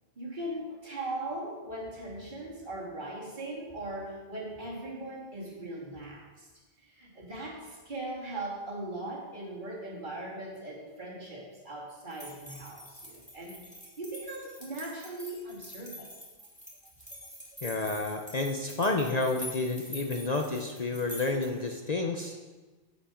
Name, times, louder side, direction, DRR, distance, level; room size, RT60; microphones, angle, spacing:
voice 1, 0.2-6.5 6.8-16.1 17.1-17.3 17.6-17.7, right 1 dB, 50° right, -4 dB, 2.7 m, -39 dB
sound 1, 12.1-21.7, left 1 dB, 5° left, 3.0 m, -46 dB
voice 2, 17.6-22.4, left 3 dB, 45° left, 3 dB, 0.7 m, -30 dB
15.5 x 5.4 x 5.0 m, 1.3 s
omnidirectional pair, 1.1 m